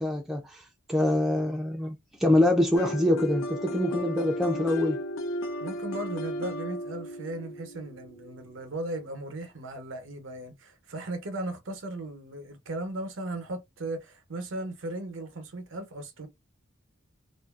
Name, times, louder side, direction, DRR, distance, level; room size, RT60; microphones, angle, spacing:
voice 1, 0.0-5.0, left 1 dB, ahead, 0.3 m, -25 dB
sound 1, 2.8-8.6, equal, 75° left, 0.5 m, -35 dB
voice 2, 5.6-16.3, right 2 dB, 80° right, 0.8 m, -37 dB
2.5 x 2.3 x 2.3 m
head